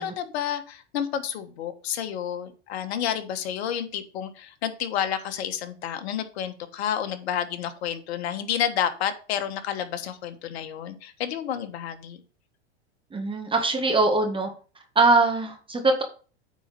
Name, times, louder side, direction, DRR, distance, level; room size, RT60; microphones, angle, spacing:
voice 1, 0.0-12.2, left 9 dB, 70° left, 9 dB, 1.4 m, -30 dB
voice 2, 13.1-14.5 15.0-16.0, right 3 dB, 15° right, 3 dB, 1.7 m, -22 dB
9.1 x 4.3 x 5.2 m, 0.38 s
hypercardioid pair, 100°, 34 cm